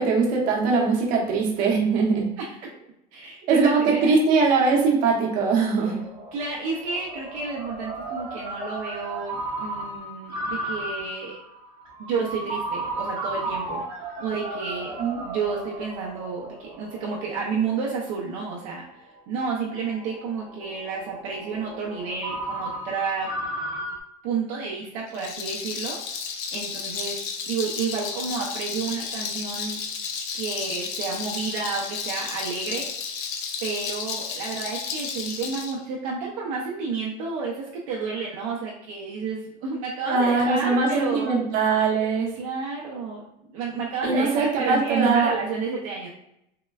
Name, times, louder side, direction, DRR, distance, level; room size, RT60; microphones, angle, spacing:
voice 1, 0.0-2.3 3.5-6.0 15.0-15.2 40.0-42.4 44.0-45.3, right 4 dB, 55° right, -2 dB, 0.9 m, -21 dB
voice 2, 3.1-4.1 6.3-11.4 12.0-13.8 14.2-15.0 15.2-19.0 19.3-23.3 24.2-26.0 26.5-27.2 27.5-29.8 30.3-32.9 33.6-41.4 41.8-41.9 42.3-46.1, right 5 dB, 75° right, -3 dB, 0.6 m, -31 dB
Ringtone, 4.2-24.0, right 2 dB, 25° right, 0.7 m, -35 dB
Rattle, 25.1-35.7, left 6 dB, 70° left, 0.5 m, -32 dB
3.7 x 2.1 x 2.3 m, 0.79 s
cardioid pair, 160°, 18 cm